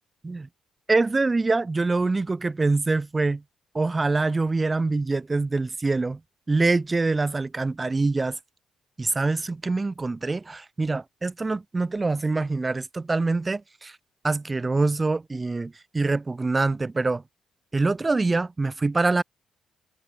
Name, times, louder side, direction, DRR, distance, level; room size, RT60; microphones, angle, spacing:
voice 1, 0.9-3.4 3.7-6.2 6.5-8.4 9.0-14.0 14.2-17.2 17.7-19.2, right 3 dB, 25° right, 0.8 m, -24 dB
cardioid pair, 90°, 0 cm